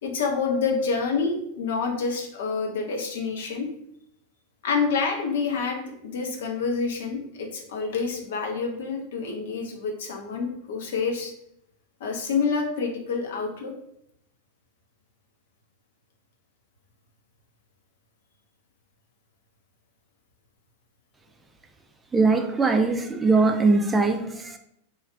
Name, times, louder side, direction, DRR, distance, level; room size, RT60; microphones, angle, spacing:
voice 1, 0.0-3.7 4.6-11.3 12.0-13.7, left 5 dB, 60° left, 2 dB, 0.7 m, -27 dB
voice 2, 22.1-24.6, right 3 dB, 15° right, 5 dB, 0.4 m, -21 dB
3.1 x 2.3 x 3.2 m, 0.75 s
figure-of-eight pair, 90°, 0 cm